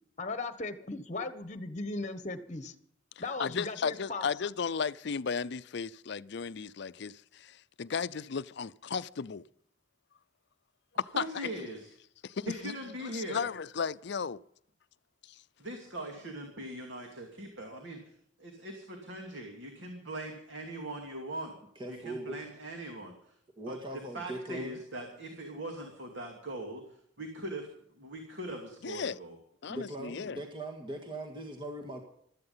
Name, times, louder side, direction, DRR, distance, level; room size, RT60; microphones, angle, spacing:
voice 1, 0.2-2.7 3.2-4.3, left 3 dB, 40° left, 1.3 m, -37 dB
voice 2, 3.4-9.4 11.0-11.5 12.2-12.7 13.1-14.4 28.8-29.2 29.6-30.4, left 6 dB, 60° left, 0.5 m, -35 dB
voice 3, 11.1-11.9 12.5-13.5 15.6-21.5 21.9-23.3 23.7-23.8 24.1-27.7 28.0-29.4, right 1 dB, 65° right, 2.6 m, -41 dB
voice 4, 21.8-22.4 23.6-24.8 29.7-32.0, right 1 dB, 25° right, 1.8 m, -40 dB
16.0 x 13.0 x 5.6 m
head